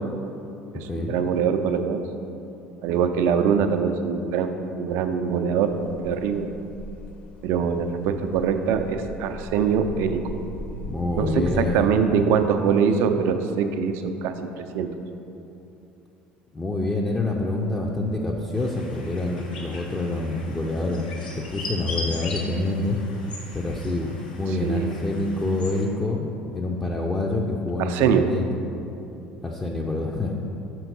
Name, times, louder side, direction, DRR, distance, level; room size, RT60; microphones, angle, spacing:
voice 1, 0.7-2.0 2.8-5.7 6.0-6.5 7.4-10.2 11.2-14.9 24.6-24.9 27.8-28.3, right 6 dB, 55° right, 7 dB, 0.4 m, -23 dB
sound 1, 5.7-11.8, left 1 dB, 40° left, 0.9 m, -39 dB
voice 2, 10.8-11.9 16.5-21.1 21.4-23.0 23.5-28.5 29.4-30.3, left 2 dB, 15° left, -1 dB, 0.6 m, -27 dB
sound 2, 18.5-25.8, left 2 dB, 75° left, 0.9 m, -38 dB
5.7 x 4.5 x 5.3 m, 2.8 s
figure-of-eight pair, 60°, 5 cm